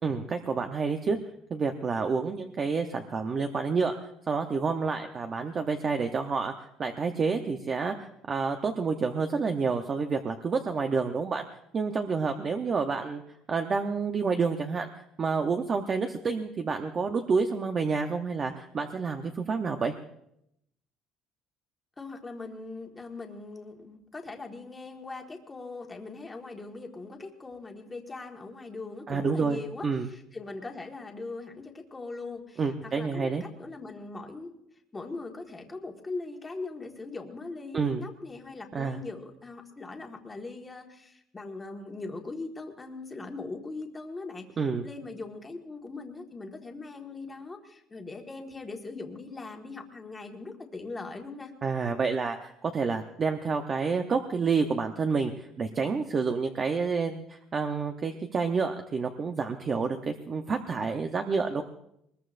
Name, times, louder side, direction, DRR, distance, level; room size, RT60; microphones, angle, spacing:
voice 1, 0.0-1.2 1.5-3.9 4.3-11.4 11.7-13.2 13.5-20.0 29.1-30.1 32.6-33.4 37.7-38.0 38.7-39.0 44.6-44.8 51.6-61.6, right 5 dB, 25° right, 5 dB, 0.8 m, -29 dB
voice 2, 22.0-32.7 32.9-34.5 34.9-44.5 44.8-51.5, left 3 dB, 15° left, 3 dB, 1.6 m, -40 dB
22.5 x 20.5 x 2.5 m, 0.76 s
cardioid pair, 170°, 0 cm